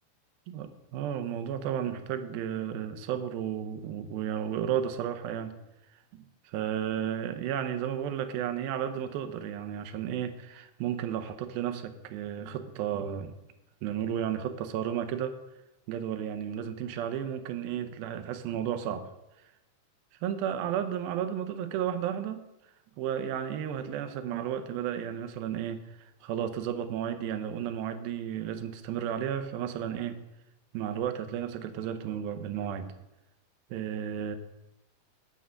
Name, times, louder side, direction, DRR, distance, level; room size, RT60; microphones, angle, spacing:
voice 1, 0.5-5.6 6.1-13.3 13.8-15.4 15.9-19.1 20.2-22.5 23.0-30.2 30.7-32.9 33.7-34.4, right 9 dB, 80° right, 9 dB, 2.5 m, -33 dB
9.4 x 6.0 x 7.6 m, 0.95 s
omnidirectional pair, 4.4 m